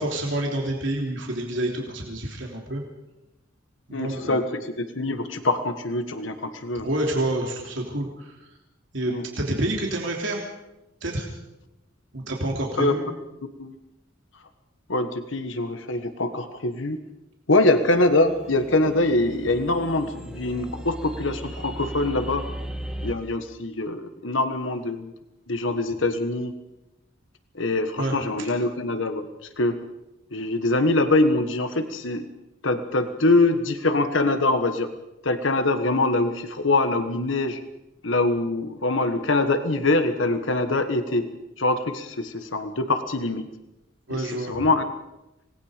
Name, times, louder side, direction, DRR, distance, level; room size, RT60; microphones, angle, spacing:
voice 1, 0.0-2.8 3.9-4.4 6.8-8.3 8.9-10.4 11.0-11.3 12.1-13.0 28.0-28.5 44.1-44.6, right 1 dB, 75° right, 0 dB, 3.3 m, -28 dB
voice 2, 3.9-6.9 9.1-9.3 12.8-12.9 13.6-13.8 14.9-17.0 17.5-22.5 23.0-25.1 25.5-26.5 27.5-29.8 30.3-32.3 32.6-34.9 35.2-37.6 38.0-43.4 44.1-44.8, left 2 dB, 85° left, 8 dB, 1.4 m, -24 dB
sound 1, 17.8-23.1, right 1 dB, 5° right, 1.8 m, -37 dB
26.5 x 19.5 x 5.1 m, 0.96 s
head